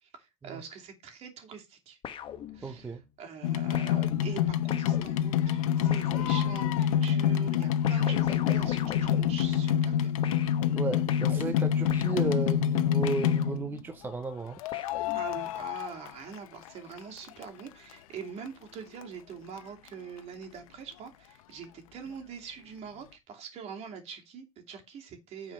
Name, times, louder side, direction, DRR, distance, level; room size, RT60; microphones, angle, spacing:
voice 1, 0.0-2.0 2.5-10.1 15.1-25.5, right 6 dB, 40° right, 2.8 m, -44 dB
sound 1, 2.0-3.0 3.7-6.9 7.8-10.0 10.2-14.0 14.7-15.7, left 9 dB, 30° left, 1.2 m, -42 dB
voice 2, 2.6-3.0 10.7-14.6, right 4 dB, 10° right, 0.6 m, -34 dB
sound 2, 3.4-13.8 14.6-16.7 17.0-17.9 18.5-18.6 18.7-18.8 19.0-19.1 19.6-19.7 19.9-20.0, left 10 dB, 90° left, 0.9 m, -27 dB
9.5 x 4.9 x 5.6 m
supercardioid pair, 140°, 17 cm